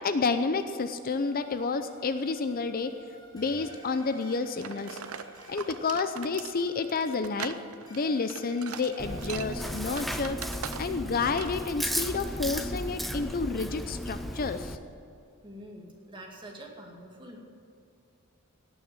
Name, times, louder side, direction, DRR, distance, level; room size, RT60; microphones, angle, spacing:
voice 1, 0.0-2.9 3.3-5.0 5.5-7.6 7.9-10.4 10.8-14.8, left 4 dB, 45° left, 9 dB, 0.6 m, -30 dB
sound 1, 1.1-10.1, right 1 dB, 20° left, 3.8 m, -51 dB
sound 2, 4.6-11.1 11.4-11.6, right 8 dB, 70° right, 0.6 m, -41 dB
Chewing mastication, 9.0-14.7, equal, ahead, 0.6 m, -35 dB
voice 2, 15.4-17.4, right 1 dB, 25° right, 0 dB, 2.3 m, -46 dB
18.0 x 6.5 x 8.9 m, 2.4 s
head